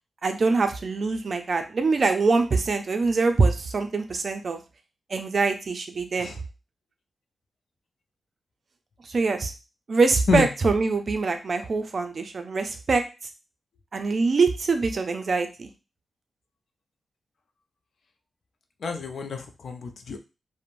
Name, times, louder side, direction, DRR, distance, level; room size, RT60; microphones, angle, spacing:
voice 1, 0.2-4.6 5.1-6.3 9.1-9.5 9.9-13.0 13.9-15.7, right 4 dB, 50° right, 7 dB, 0.4 m, -24 dB
voice 2, 18.8-20.2, left 4 dB, 65° left, 5 dB, 0.4 m, -28 dB
3.0 x 2.1 x 2.5 m, 0.30 s
wide cardioid pair, 120°, 0 cm